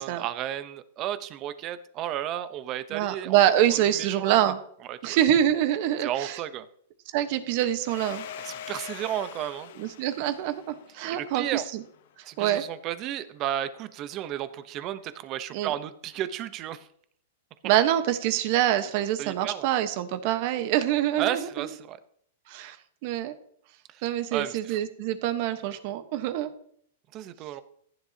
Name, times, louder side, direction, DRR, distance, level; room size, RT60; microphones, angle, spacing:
voice 1, 0.0-3.4 3.8-4.4 4.9-5.2 6.0-6.7 8.4-9.7 11.1-11.6 12.3-16.9 19.2-19.7 21.2-22.0 23.9-24.0 24.3-24.8 27.1-27.6, right 11 dB, 35° right, 12 dB, 0.9 m, -33 dB
voice 2, 2.9-4.6 5.0-6.4 7.1-8.3 9.8-11.8 12.4-12.6 15.5-15.7 17.6-21.7 22.5-22.8 23.0-23.3 24.0-26.5, right 12 dB, 50° right, 10 dB, 1.2 m, -25 dB
Domestic sounds home sounds, 7.9-12.3, left 9 dB, 65° left, 1.0 m, -43 dB
14.5 x 10.0 x 2.9 m, 0.65 s
hypercardioid pair, 145°, 0 cm